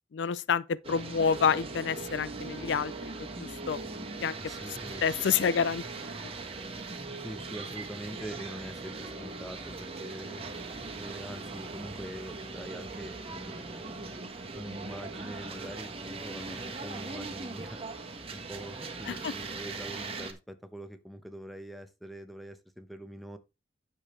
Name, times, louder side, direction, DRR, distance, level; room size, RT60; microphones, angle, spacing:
voice 1, 0.1-3.8 4.2-4.3 5.0-6.3 19.1-19.3, left 6 dB, 75° left, 0.4 m, -29 dB
sound 1, 0.8-20.3, right 3 dB, 30° right, 1.4 m, -40 dB
voice 2, 4.4-5.0 7.2-10.5 11.0-14.0 14.5-17.8 18.3-23.4, equal, ahead, 0.9 m, -44 dB
9.8 x 6.9 x 3.2 m
head